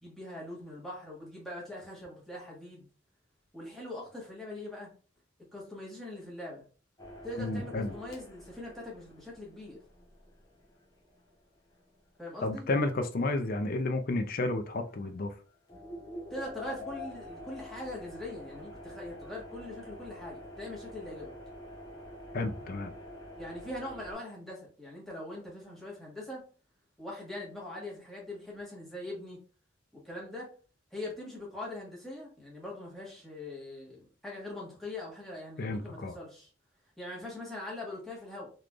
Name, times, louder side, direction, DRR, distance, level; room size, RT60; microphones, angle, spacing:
voice 1, 0.0-2.9 3.5-4.9 5.5-6.6 7.2-9.8 12.2-12.7 16.3-21.3 23.4-26.4 27.0-29.4 30.0-30.5 30.9-36.5 37.0-38.5, left 1 dB, ahead, -4 dB, 1.4 m, -42 dB
sound 1, 7.0-12.9 13.3-13.4 14.9-15.2 15.7-24.1, left 1 dB, 20° left, 0.9 m, -47 dB
voice 2, 7.4-7.9 12.4-15.3 22.3-22.9 35.6-36.1, left 2 dB, 45° left, 8 dB, 0.4 m, -31 dB
3.9 x 3.2 x 2.4 m, 0.38 s
head